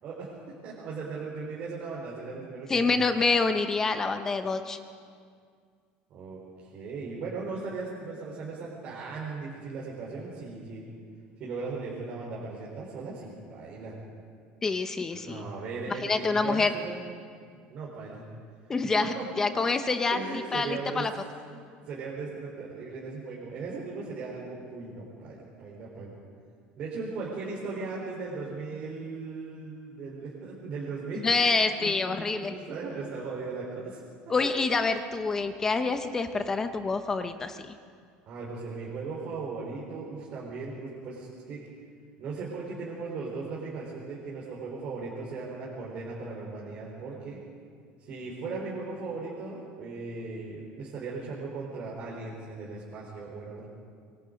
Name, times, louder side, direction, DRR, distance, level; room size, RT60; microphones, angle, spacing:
voice 1, 0.0-2.9 6.1-6.4 6.7-10.9 11.4-14.0 15.1-17.0 17.7-18.2 18.8-19.3 20.1-21.1 21.5-26.1 26.8-34.0 34.3-34.4 34.7-35.0 38.3-41.6 42.2-47.4 48.0-53.7, right 4 dB, 40° right, -5 dB, 3.8 m, -38 dB
voice 2, 2.7-4.8 14.6-15.4 16.0-16.7 18.7-20.2 20.5-21.1 31.2-32.5 34.3-37.7, left 4 dB, 15° left, 8 dB, 0.7 m, -27 dB
25.0 x 23.5 x 5.2 m, 2.1 s
cardioid pair, 175°, 3 cm